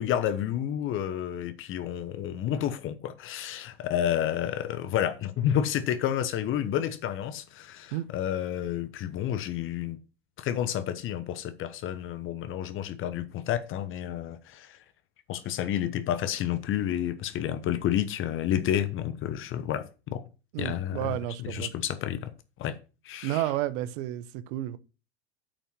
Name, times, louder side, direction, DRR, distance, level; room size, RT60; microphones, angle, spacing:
voice 1, 0.0-10.0 10.4-14.8 15.3-20.2 20.6-22.3 22.6-22.8 23.0-23.4, left 10 dB, 40° left, 1.0 m, -30 dB
voice 2, 20.5-21.7 23.2-24.8, right 14 dB, 55° right, 0.9 m, -31 dB
8.7 x 5.6 x 6.0 m
figure-of-eight pair, 75°, 32 cm